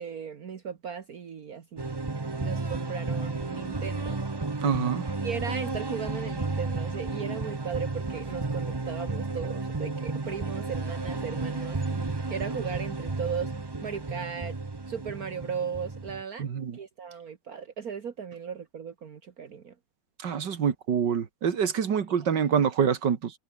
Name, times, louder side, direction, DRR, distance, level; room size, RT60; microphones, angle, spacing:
voice 1, 0.0-2.0 2.4-4.2 5.2-13.5 13.8-14.6 14.9-16.5 16.7-19.8, right 6 dB, 60° right, 1.9 m, -37 dB
sound 1, 1.8-16.2, right 3 dB, 20° right, 0.7 m, -33 dB
voice 2, 4.6-5.0 16.4-16.8 20.2-23.3, right 7 dB, 80° right, 2.4 m, -26 dB
omnidirectional pair, 1.8 m